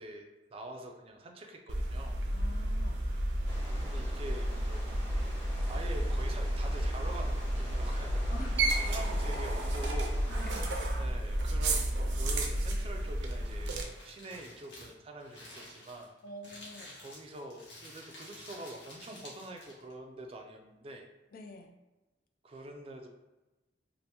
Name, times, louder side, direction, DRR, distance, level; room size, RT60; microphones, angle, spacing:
voice 1, 0.0-2.2 3.8-4.8 5.7-10.2 11.0-16.1 17.0-21.1 22.4-23.1, right 1 dB, 30° right, 3 dB, 0.4 m, -45 dB
sound 1, 1.7-13.8, right 1 dB, 85° right, 0.5 m, -31 dB
voice 2, 2.3-3.0 8.3-8.9 9.8-9.9 10.3-10.7 16.2-17.0 21.3-21.7, left 1 dB, 50° left, 4 dB, 0.3 m, -47 dB
sound 2, 3.4-10.7, equal, 10° left, 0.9 m, -48 dB
Crumpling crinkling, 13.2-19.9, left 1 dB, 75° left, 1.1 m, -51 dB
2.7 x 2.5 x 3.3 m, 1.1 s
head